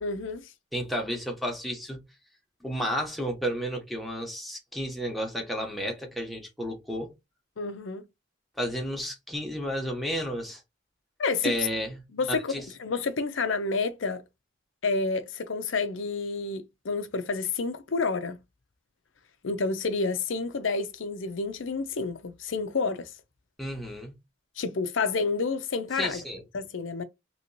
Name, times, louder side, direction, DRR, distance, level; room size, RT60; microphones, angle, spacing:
voice 1, 0.0-0.5 7.6-8.0 11.2-11.5 12.1-12.5 12.8-14.2 14.8-18.4 19.4-23.1 24.6-26.2 26.5-27.0, left 4 dB, 90° left, 0.6 m, -29 dB
voice 2, 0.7-2.0 2.6-7.1 8.6-10.6 11.4-12.0 12.5-12.6 23.6-24.1 25.9-26.4, equal, ahead, 1.1 m, -32 dB
3.0 x 3.0 x 2.7 m
head